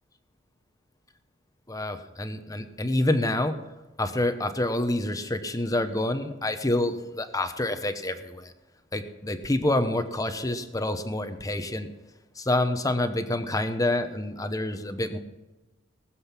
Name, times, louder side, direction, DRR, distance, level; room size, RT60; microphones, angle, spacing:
voice 1, 1.7-3.6 4.0-8.5 8.9-11.9 12.4-15.2, left 1 dB, 20° left, 9 dB, 1.0 m, -27 dB
19.5 x 7.8 x 5.9 m, 1.1 s
head